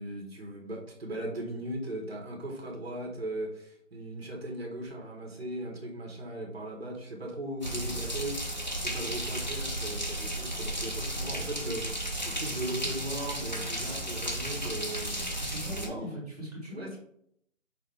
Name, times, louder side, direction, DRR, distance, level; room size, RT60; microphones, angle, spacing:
voice 1, 0.0-15.2 15.8-16.2 16.7-17.0, right 1 dB, 50° right, 1 dB, 1.1 m, -38 dB
sound 1, 7.6-15.9, right 1 dB, 35° left, 0.5 m, -34 dB
voice 2, 15.4-17.0, equal, 30° right, -5 dB, 1.2 m, -39 dB
5.6 x 2.2 x 3.3 m, 0.69 s
figure-of-eight pair, 170°, 39 cm